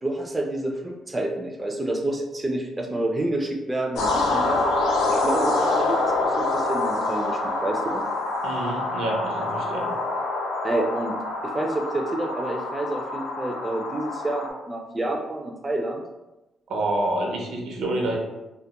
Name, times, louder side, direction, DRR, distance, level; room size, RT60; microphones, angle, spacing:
voice 1, 0.0-4.6 5.1-8.0 10.6-16.0, right 1 dB, 20° right, 1 dB, 0.3 m, -29 dB
sound 1, 4.0-14.5, left 2 dB, 80° left, 0.4 m, -26 dB
voice 2, 8.4-9.9 16.7-18.2, right 1 dB, 80° right, -1 dB, 0.6 m, -27 dB
2.2 x 2.1 x 2.8 m, 1.0 s
cardioid pair, 90°, 0 cm